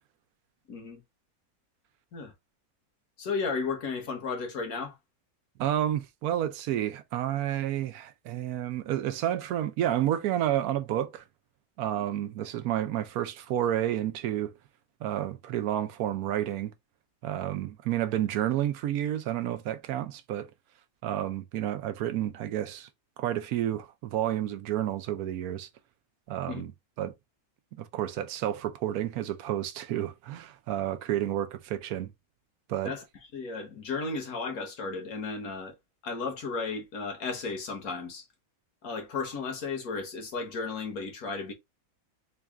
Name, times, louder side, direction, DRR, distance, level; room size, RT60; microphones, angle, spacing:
voice 1, 0.7-1.0 2.1-2.3 3.2-5.0 26.5-26.6 32.8-33.0 33.3-35.7 36.0-38.2 38.8-41.5, left 4 dB, 80° left, 1.6 m, -34 dB
voice 2, 5.6-11.2 11.8-14.5 15.0-16.7 17.2-20.5 21.0-22.9 23.2-25.7 26.3-26.7 27.0-27.1 27.8-32.1 32.7-32.9, right 12 dB, 90° right, 1.1 m, -30 dB
4.0 x 2.3 x 3.4 m
omnidirectional pair, 1.5 m